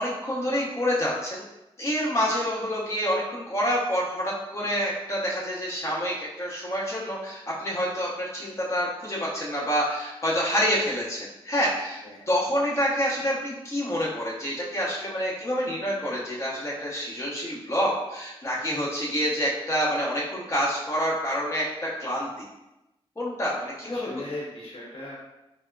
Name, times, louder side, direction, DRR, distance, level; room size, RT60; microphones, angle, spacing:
voice 1, 0.0-1.4 1.8-22.3 23.2-24.2, equal, 30° left, -7 dB, 0.9 m, -27 dB
voice 2, 23.8-25.1, left 1 dB, 70° left, -5 dB, 0.9 m, -37 dB
4.2 x 2.0 x 2.3 m, 0.95 s
wide cardioid pair, 90°, 10 cm